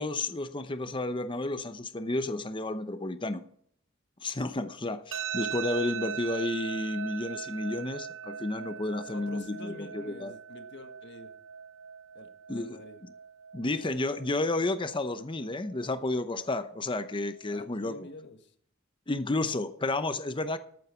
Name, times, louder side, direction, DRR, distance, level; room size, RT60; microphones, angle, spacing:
voice 1, 0.0-3.4 4.2-10.3 12.5-13.1 13.5-18.1 19.1-20.6, left 2 dB, 25° left, 11 dB, 0.8 m, -32 dB
sound 1, 5.1-18.1, right 8 dB, 65° right, 0.7 m, -41 dB
voice 2, 9.1-11.3 12.1-12.3 12.6-13.0 17.5-18.4, left 2 dB, 55° left, 7 dB, 1.5 m, -47 dB
14.0 x 8.9 x 4.4 m, 0.63 s
head